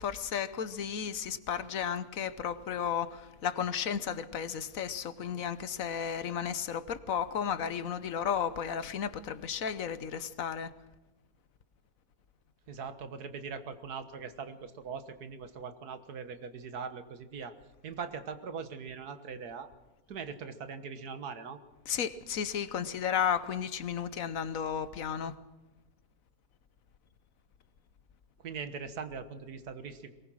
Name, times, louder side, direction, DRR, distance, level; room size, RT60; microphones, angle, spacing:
voice 1, 0.0-10.7 21.9-25.3, left 8 dB, 65° left, 1.2 m, -33 dB
voice 2, 12.7-17.6 17.8-19.7 20.1-21.6 28.4-30.1, right 5 dB, 90° right, 1.9 m, -41 dB
22.5 x 19.0 x 6.3 m
omnidirectional pair, 1.6 m